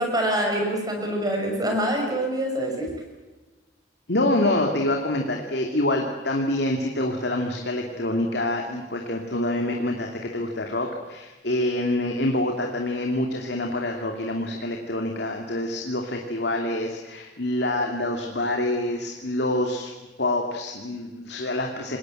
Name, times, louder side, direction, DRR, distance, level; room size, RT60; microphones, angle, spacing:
voice 1, 0.0-2.9, right 1 dB, 20° right, 2 dB, 5.9 m, -25 dB
voice 2, 4.1-19.9 20.2-22.0, left 1 dB, 65° left, 2 dB, 2.8 m, -26 dB
27.5 x 21.0 x 7.9 m, 1.2 s
head